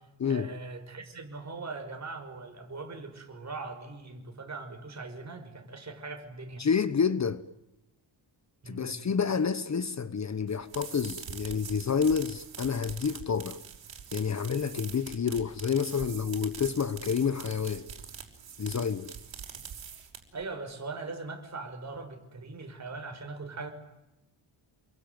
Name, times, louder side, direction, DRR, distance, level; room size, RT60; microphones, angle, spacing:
voice 1, 0.2-6.7 8.6-8.9 20.3-23.7, right 3 dB, 35° right, 5.6 m, -40 dB
voice 2, 6.6-7.4 8.7-13.6 14.1-17.9 18.6-19.1, left 6 dB, 35° left, 1.1 m, -29 dB
sound 1, 10.5-20.4, right 7 dB, 70° right, 5.4 m, -44 dB
29.0 x 22.0 x 9.4 m
wide cardioid pair, 135°, 46 cm